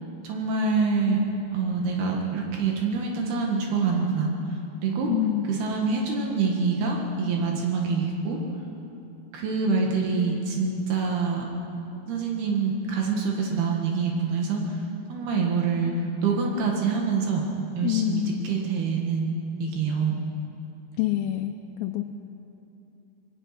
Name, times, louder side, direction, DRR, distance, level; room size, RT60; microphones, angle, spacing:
voice 1, 0.2-1.2 1.5-4.3 4.8-5.1 5.5-8.4 9.3-11.5 12.1-14.8 15.1-17.4 17.8-20.2, right 4 dB, 75° right, 0 dB, 3.8 m, -26 dB
voice 2, 5.1-5.5 17.8-18.4 21.0-21.5 21.8-22.0, left 14 dB, 75° left, 4 dB, 2.3 m, -26 dB
26.0 x 21.5 x 5.9 m, 2.8 s
omnidirectional pair, 4.6 m